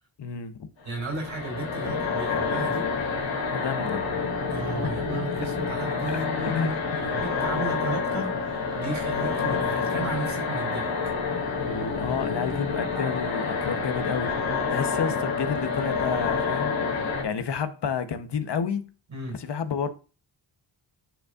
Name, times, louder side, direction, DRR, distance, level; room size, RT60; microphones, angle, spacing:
voice 1, 0.2-0.7 1.8-1.9 3.5-4.2 4.8-4.9 6.1-6.2 6.5-6.7 11.6-14.3 14.7-16.7 17.2-18.9 19.3-19.9, left 6 dB, 65° left, 0.9 m, -30 dB
voice 2, 0.8-2.9 4.5-11.1 19.1-19.4, right 2 dB, 90° right, 3.5 m, -34 dB
sound 1, 0.9-17.2, left 5 dB, 80° left, 2.4 m, -28 dB
8.9 x 5.2 x 2.4 m
cardioid pair, 80°, 45 cm